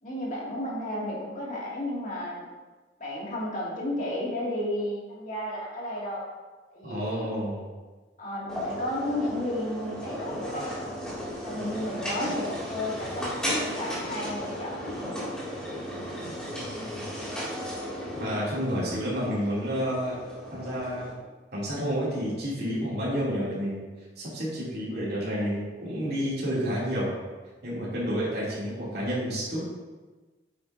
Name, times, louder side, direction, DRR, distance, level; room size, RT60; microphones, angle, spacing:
voice 1, 0.0-2.5 3.0-6.3 6.7-7.3 8.2-10.8 11.4-15.0, left 1 dB, 45° left, -5 dB, 2.2 m, -33 dB
voice 2, 6.8-7.6 16.6-17.0 18.1-20.2 20.5-21.1 21.5-23.8 24.2-27.1 27.6-29.6, equal, 60° right, -8 dB, 2.7 m, -30 dB
sound 1, 8.5-21.1, equal, 5° left, 2.3 m, -35 dB
9.2 x 7.5 x 2.6 m, 1.3 s
head